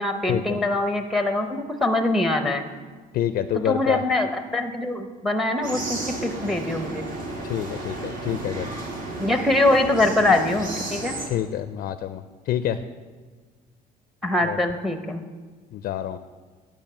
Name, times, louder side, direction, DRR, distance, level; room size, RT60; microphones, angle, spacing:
voice 1, 0.0-2.7 3.6-7.1 9.2-11.2 14.2-15.2, left 2 dB, ahead, 7 dB, 0.7 m, -23 dB
voice 2, 3.1-4.0 7.4-8.7 11.3-12.8 14.4-14.6 15.7-16.2, left 11 dB, 60° left, 12 dB, 0.4 m, -27 dB
sound 1, 5.6-11.3, right 2 dB, 50° right, 1.9 m, -33 dB
8.9 x 5.2 x 7.4 m, 1.4 s
cardioid pair, 110°, 17 cm